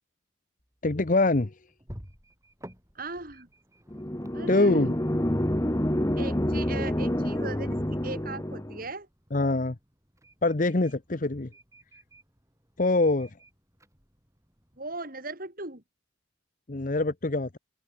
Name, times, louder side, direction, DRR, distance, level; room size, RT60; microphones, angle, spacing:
sound 1, 0.6-15.0, equal, 15° right, 7.6 m, -54 dB
voice 1, 0.8-1.6 4.5-4.9 9.3-9.8 10.4-11.5 12.8-13.3 16.7-17.6, left 2 dB, 40° left, 0.9 m, -24 dB
voice 2, 2.9-3.5 4.3-4.9 6.2-9.1 14.8-15.8, right 2 dB, 45° right, 5.0 m, -38 dB
sound 2, 3.9-8.8, left 1 dB, 15° left, 1.3 m, -28 dB
open air
head